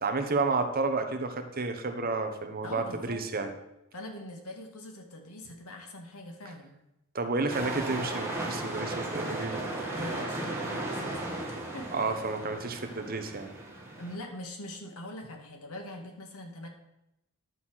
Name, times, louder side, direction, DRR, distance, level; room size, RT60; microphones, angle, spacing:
voice 1, 0.0-3.5 7.1-9.6 11.9-13.5, right 3 dB, 40° right, 7 dB, 1.1 m, -31 dB
voice 2, 2.6-3.2 3.9-6.8 9.5-11.2 11.7-12.0 14.0-16.7, left 1 dB, 75° left, 3 dB, 2.0 m, -43 dB
sound 1, 7.5-14.2, right 2 dB, 10° right, 1.9 m, -35 dB
11.0 x 5.8 x 6.3 m, 0.88 s
head